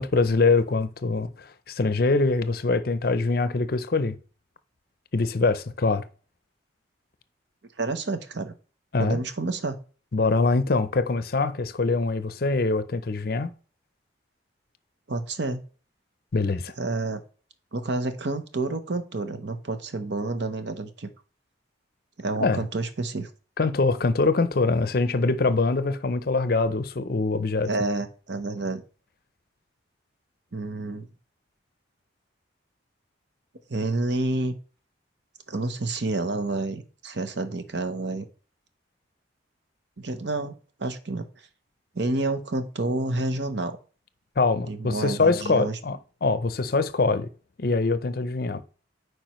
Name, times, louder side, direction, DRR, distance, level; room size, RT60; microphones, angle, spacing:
voice 1, 0.0-4.2 5.1-6.0 8.9-9.2 10.1-13.5 16.3-16.7 22.4-22.6 23.6-27.7 44.4-47.3 47.6-48.6, left 3 dB, 50° left, 0.5 m, -24 dB
voice 2, 7.8-8.5 9.0-9.8 15.1-15.6 16.8-17.2 17.7-21.1 22.2-23.3 27.7-28.8 30.5-31.1 33.7-34.5 35.5-38.3 40.0-40.5 40.8-41.3 41.9-43.8 44.7-45.8, right 2 dB, 60° right, 0.8 m, -29 dB
9.0 x 4.7 x 3.1 m
head